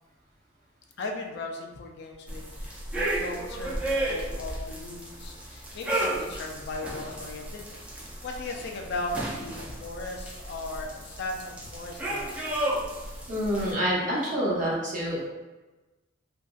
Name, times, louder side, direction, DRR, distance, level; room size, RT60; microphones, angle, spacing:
voice 1, 1.0-7.7 8.2-12.3, left 2 dB, 60° left, 2 dB, 0.4 m, -37 dB
sound 1, 2.3-13.7, right 1 dB, 5° right, 0.4 m, -33 dB
voice 2, 13.3-15.3, equal, 40° right, -6 dB, 0.9 m, -27 dB
2.9 x 2.6 x 2.3 m, 1.1 s
head